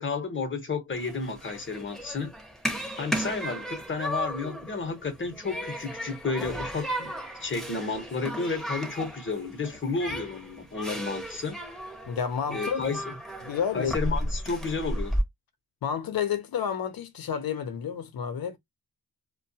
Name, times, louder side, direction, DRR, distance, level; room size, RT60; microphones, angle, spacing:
voice 1, 0.0-2.3 2.7-7.1 7.4-11.6 12.5-13.1 13.7-15.2, left 4 dB, 30° left, 0.9 m, -32 dB
Human group actions, 0.9-15.2, equal, ahead, 0.8 m, -35 dB
voice 2, 12.1-12.8 13.4-13.9 15.8-18.6, left 7 dB, 70° left, 0.7 m, -30 dB
2.2 x 2.2 x 2.7 m
cardioid pair, 80°, 37 cm